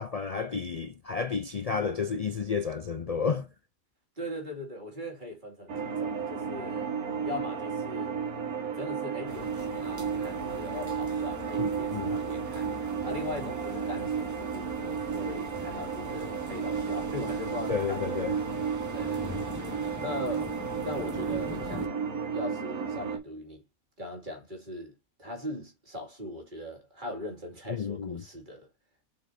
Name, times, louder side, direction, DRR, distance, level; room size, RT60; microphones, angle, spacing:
voice 1, 0.0-3.5 11.6-12.2 17.7-18.3 27.7-28.2, left 5 dB, 65° left, 0.3 m, -31 dB
voice 2, 4.2-7.0 7.2-8.2 8.7-18.4 18.9-19.4 20.0-20.6 20.8-22.0 22.3-23.6 24.0-28.7, left 1 dB, 35° right, 2.6 m, -40 dB
sound 1, 5.7-23.2, right 6 dB, 75° right, 2.2 m, -33 dB
sound 2, 9.3-21.9, left 1 dB, 10° right, 1.7 m, -45 dB
7.7 x 5.1 x 2.6 m
omnidirectional pair, 1.5 m